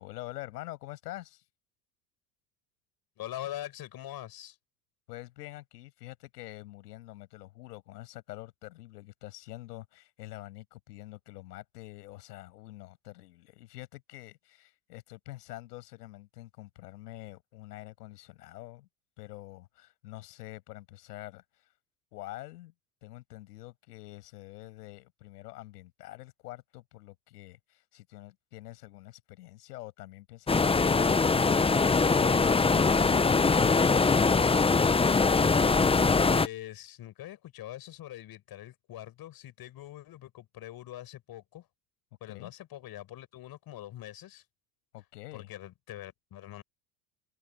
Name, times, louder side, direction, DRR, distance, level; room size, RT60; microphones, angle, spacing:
voice 1, 0.0-1.4 5.1-18.9 19.2-21.7 22.1-22.7 23.0-33.9 42.3-42.5 44.9-45.5, left 17 dB, 80° left, 7.1 m, -46 dB
voice 2, 3.2-4.6 36.2-41.7 42.2-44.4 45.3-46.6, left 13 dB, 50° left, 7.2 m, -43 dB
sound 1, 30.5-36.5, left 4 dB, 10° left, 0.9 m, -23 dB
hypercardioid pair, 90°, 47 cm